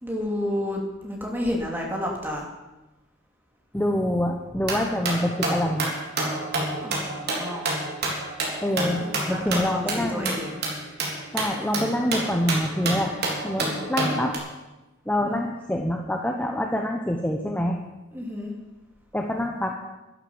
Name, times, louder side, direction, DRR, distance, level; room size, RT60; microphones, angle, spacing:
voice 1, 0.0-2.5 6.7-7.6 8.8-10.6 15.2-15.4 18.1-18.5, left 1 dB, 10° right, -1 dB, 2.9 m, -31 dB
voice 2, 3.7-5.9 8.6-9.0 9.3-10.4 11.3-13.1 13.4-14.3 15.1-17.8 19.1-19.7, left 1 dB, 10° left, 2 dB, 1.0 m, -26 dB
sound 1, 4.6-14.4, right 2 dB, 55° right, 3.5 m, -29 dB
12.0 x 11.5 x 7.2 m, 1.1 s
head